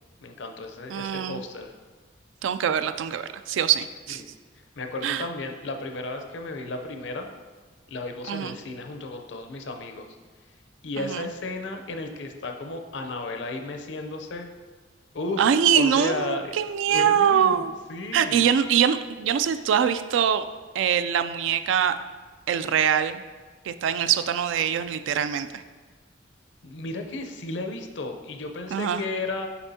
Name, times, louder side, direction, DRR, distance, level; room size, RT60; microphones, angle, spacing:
voice 1, 0.2-1.7 4.1-4.3 4.8-7.3 7.9-10.1 10.8-14.5 15.1-16.6 16.9-18.6 26.6-29.5, left 2 dB, 70° left, 5 dB, 0.6 m, -34 dB
voice 2, 0.9-1.4 2.4-4.2 5.0-5.3 8.3-8.6 11.0-11.3 15.4-17.7 18.1-20.5 20.7-21.9 22.5-23.2 23.6-25.6 28.7-29.0, right 8 dB, 80° right, 11 dB, 0.3 m, -23 dB
6.9 x 5.0 x 2.7 m, 1.4 s
head